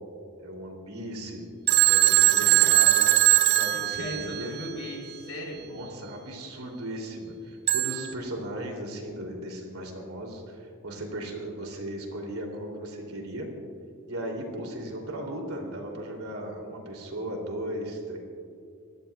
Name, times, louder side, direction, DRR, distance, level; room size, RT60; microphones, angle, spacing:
voice 1, 0.4-1.4 1.9-3.1 3.5-4.5 5.5-13.5 14.1-18.2, right 1 dB, 90° right, 1 dB, 3.0 m, -37 dB
Telephone, 1.7-4.7 7.7-8.1, right 16 dB, 50° right, 0.6 m, -21 dB
voice 2, 2.5-2.8 3.7-5.6, left 1 dB, 70° left, 0 dB, 4.0 m, -38 dB
28.5 x 14.0 x 2.4 m, 2.4 s
head